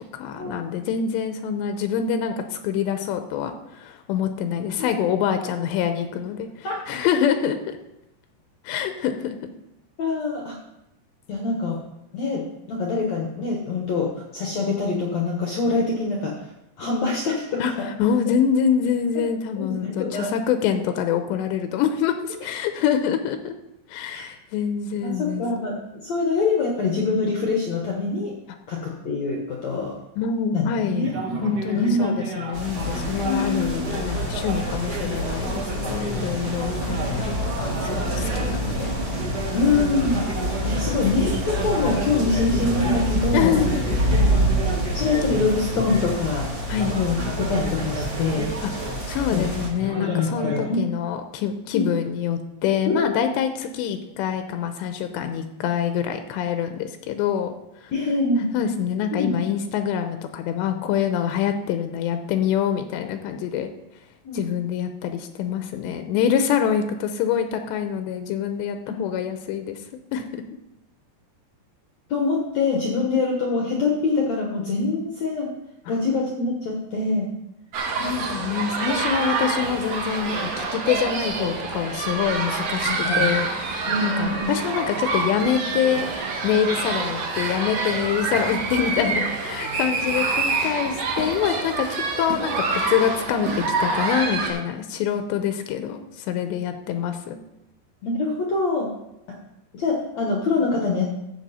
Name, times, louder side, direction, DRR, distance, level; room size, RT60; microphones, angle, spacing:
voice 1, 0.0-6.5 6.9-7.8 8.7-9.5 17.6-23.5 23.9-25.4 30.2-31.1 31.4-39.0 43.3-43.8 46.7-47.0 48.6-48.7 49.1-57.6 57.8-57.9 58.5-63.7 64.3-69.8 70.1-70.4 74.8-74.9 78.0-97.4, left 8 dB, 85° left, 7 dB, 3.0 m, -25 dB
voice 2, 10.0-10.6 11.3-11.8 12.1-16.5 16.8-17.9 19.2-19.3 19.6-20.3 24.1-24.2 25.0-28.3 28.7-30.0 30.5-32.1 33.2-33.8 39.5-40.3 40.6-43.6 44.9-46.5 46.9-48.5 49.3-49.5 50.0-50.8 51.7-51.9 52.9-53.1 57.9-58.5 59.1-59.4 64.2-64.5 68.9-69.1 72.1-75.5 75.9-77.3 79.1-79.2 82.9-83.3 83.9-84.5 98.0-98.9 99.7-101.0, left 3 dB, 65° left, -1 dB, 1.8 m, -24 dB
sound 1, 31.0-50.7, right 1 dB, 70° right, 0.9 m, -33 dB
sound 2, 32.5-49.7, equal, 30° right, 1.0 m, -27 dB
sound 3, 77.7-94.5, right 4 dB, 55° right, 2.1 m, -26 dB
13.5 x 7.5 x 4.2 m, 0.89 s
omnidirectional pair, 4.9 m